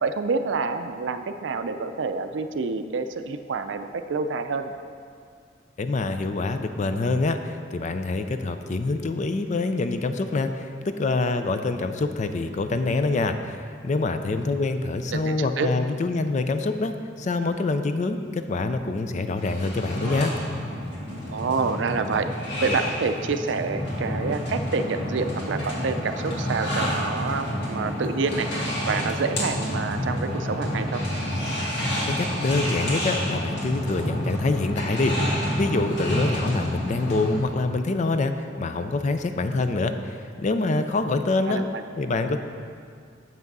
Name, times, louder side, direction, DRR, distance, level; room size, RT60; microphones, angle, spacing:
voice 1, 0.0-4.7 15.1-15.7 21.3-22.3 22.6-28.5 28.8-31.0 41.5-41.8, right 4 dB, 70° right, 9 dB, 0.4 m, -27 dB
voice 2, 5.8-13.6 13.8-20.3 32.1-41.7 42.0-42.4, left 3 dB, 40° left, 8 dB, 0.4 m, -26 dB
sound 1, 19.4-37.4, equal, 65° left, 1.9 m, -29 dB
7.5 x 5.9 x 5.4 m, 2.2 s
head